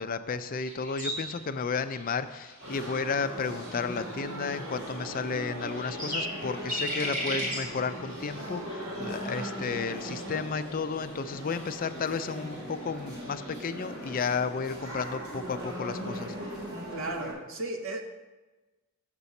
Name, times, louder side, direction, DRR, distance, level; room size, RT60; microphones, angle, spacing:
voice 1, 0.0-16.3, left 5 dB, 45° left, 10 dB, 0.4 m, -33 dB
sound 1, 0.6-13.6, equal, 40° right, 3.2 m, -40 dB
sound 2, 2.6-17.3, equal, 85° right, 3.1 m, -39 dB
voice 2, 10.1-10.5 16.9-18.0, right 2 dB, 70° right, 3 dB, 1.0 m, -36 dB
6.7 x 5.3 x 7.0 m, 1.2 s
head